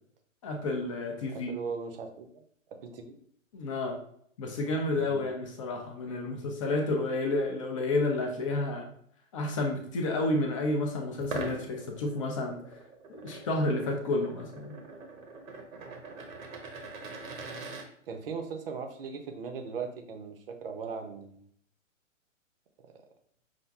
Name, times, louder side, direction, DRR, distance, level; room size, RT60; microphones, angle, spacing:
voice 1, 0.4-1.5 3.5-4.0 4.4-8.9 9.3-12.6 13.1-14.8, left 2 dB, 25° left, 2 dB, 0.5 m, -30 dB
voice 2, 1.3-2.3 2.7-3.2 5.0-5.2 18.1-21.3, right 5 dB, 45° right, 5 dB, 0.6 m, -38 dB
sound 1, 11.2-17.9, right 3 dB, 80° right, 0.9 m, -42 dB
5.8 x 2.5 x 2.3 m, 0.64 s
hypercardioid pair, 130°, 40 cm